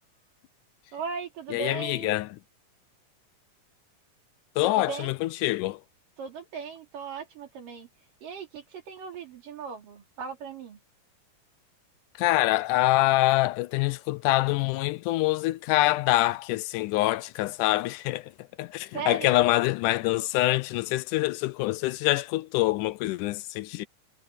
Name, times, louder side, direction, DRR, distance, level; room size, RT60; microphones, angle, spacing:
voice 1, 0.9-2.1 4.6-5.1 6.2-7.9 8.2-10.8 18.9-19.4, right 6 dB, 85° right, 5.2 m, -37 dB
voice 2, 1.5-2.3 4.6-5.8 12.2-18.3 18.6-23.9, left 17 dB, 80° left, 2.0 m, -25 dB
omnidirectional pair, 3.7 m